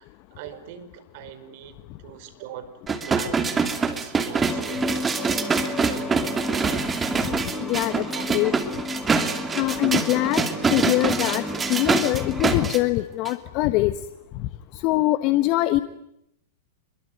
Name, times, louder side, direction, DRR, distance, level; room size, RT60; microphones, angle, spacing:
voice 1, 0.0-6.4 8.1-8.3 11.5-11.7, right 10 dB, 55° right, 11 dB, 5.2 m, -42 dB
sound 1, 2.9-12.8 13.3-13.4, right 5 dB, 15° right, 2.8 m, -25 dB
sound 2, 4.4-12.7, left 1 dB, 5° left, 4.9 m, -33 dB
voice 2, 7.6-8.1 8.3-8.5 9.5-11.4 11.7-14.0 14.3-15.8, left 18 dB, 45° left, 12 dB, 1.3 m, -23 dB
27.5 x 23.0 x 9.3 m, 0.78 s
hypercardioid pair, 105°, 0 cm